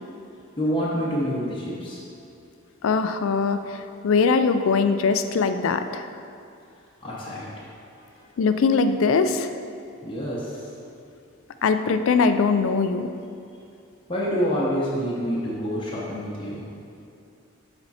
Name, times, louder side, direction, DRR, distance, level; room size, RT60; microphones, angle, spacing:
voice 1, 0.6-2.0 7.0-7.5 10.0-10.6 14.1-16.6, equal, 25° left, -7 dB, 0.8 m, -27 dB
voice 2, 2.8-6.1 8.4-9.5 11.6-13.1, left 5 dB, 70° left, 9 dB, 0.3 m, -21 dB
6.9 x 4.4 x 4.2 m, 2.5 s
head